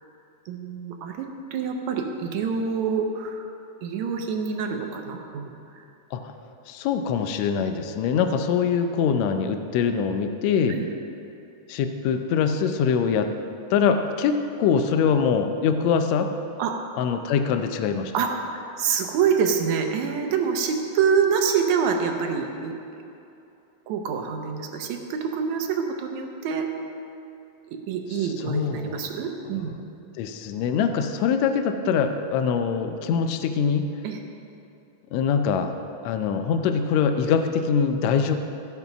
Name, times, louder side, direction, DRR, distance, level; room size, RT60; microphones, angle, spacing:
voice 1, 0.5-3.4 3.8-5.5 10.7-10.9 16.6-16.7 18.1-23.0 23.9-26.7 27.7-29.7 31.8-32.0 34.0-34.2, right 6 dB, 75° right, 3 dB, 2.2 m, -26 dB
voice 2, 6.7-10.8 11.7-13.3 13.7-16.3 17.0-18.1 28.2-29.2 30.2-33.8 35.1-35.7 36.0-38.4, left 6 dB, 75° left, 7 dB, 1.9 m, -23 dB
15.5 x 5.4 x 5.9 m, 2.8 s
omnidirectional pair, 3.4 m